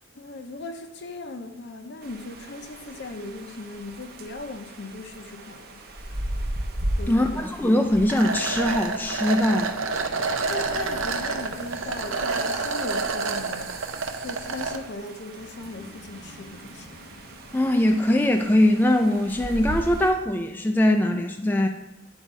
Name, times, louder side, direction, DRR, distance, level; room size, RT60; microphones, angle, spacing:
voice 1, 0.1-5.8 7.0-7.6 10.5-13.7 14.2-17.0, left 2 dB, 60° left, 7 dB, 0.6 m, -38 dB
sound 1, 2.0-20.1, right 1 dB, 50° right, 0.7 m, -38 dB
voice 2, 7.1-9.8 17.5-21.7, left 1 dB, 10° left, 4 dB, 0.3 m, -21 dB
sound 2, 8.1-14.8, right 4 dB, 90° right, 0.6 m, -28 dB
Breathing, 9.8-13.5 15.3-18.4, left 1 dB, 80° left, 1.0 m, -48 dB
9.6 x 3.5 x 4.1 m, 0.93 s
head